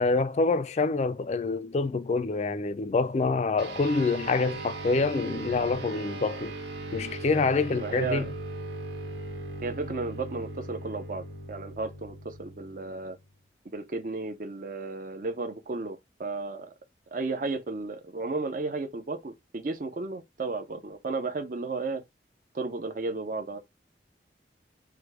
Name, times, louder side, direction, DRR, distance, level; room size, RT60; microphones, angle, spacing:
voice 1, 0.0-6.5 6.9-8.3, left 3 dB, 35° left, 0.3 m, -26 dB
sound 1, 3.6-13.3, right 2 dB, 85° right, 1.3 m, -39 dB
voice 2, 7.8-8.3 9.6-13.2 13.6-16.7 17.1-22.0 22.5-23.6, right 3 dB, 45° right, 0.5 m, -33 dB
4.9 x 2.1 x 4.7 m
head